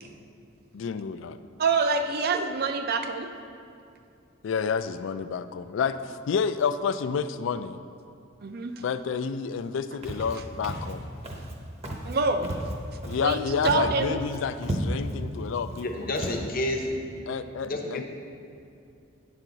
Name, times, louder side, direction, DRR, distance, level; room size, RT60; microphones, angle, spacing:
voice 1, 0.7-1.4 4.4-7.8 8.8-11.1 13.1-16.1 17.3-18.0, left 6 dB, 75° left, 12 dB, 0.3 m, -29 dB
voice 2, 1.6-3.3 8.4-8.8 12.0-12.5 13.2-14.2, right 4 dB, 55° right, 7 dB, 0.5 m, -26 dB
Walk footsteps, 10.0-10.3 10.6-10.9 11.2-11.5 11.8-12.2 12.4-13.3 13.6-14.0 14.3-14.4 14.6-15.2 15.7-15.8 16.1-16.4, equal, 35° right, 0.9 m, -33 dB
voice 3, 15.7-17.2 17.6-18.0, left 1 dB, 50° left, 3 dB, 0.8 m, -30 dB
9.1 x 6.0 x 3.9 m, 2.5 s
head